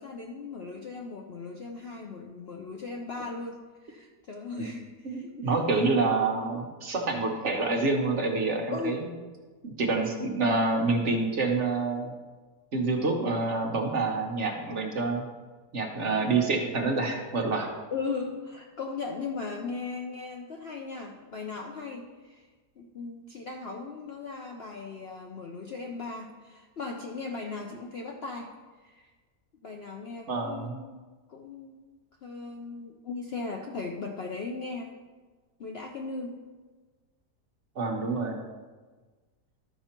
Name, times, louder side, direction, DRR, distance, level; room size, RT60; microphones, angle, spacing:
voice 1, 0.0-5.7 8.7-9.1 17.9-22.5 22.8-28.5 28.8-29.1 29.6-31.0 31.3-31.8 32.2-34.9 35.6-36.4, left 4 dB, 60° left, 1 dB, 0.7 m, -38 dB
voice 2, 5.0-9.0 9.6-12.1 12.7-15.3 15.7-17.7 30.3-30.8 37.8-38.4, right 3 dB, 50° right, 2 dB, 1.2 m, -27 dB
12.0 x 5.5 x 4.4 m, 1.4 s
omnidirectional pair, 1.8 m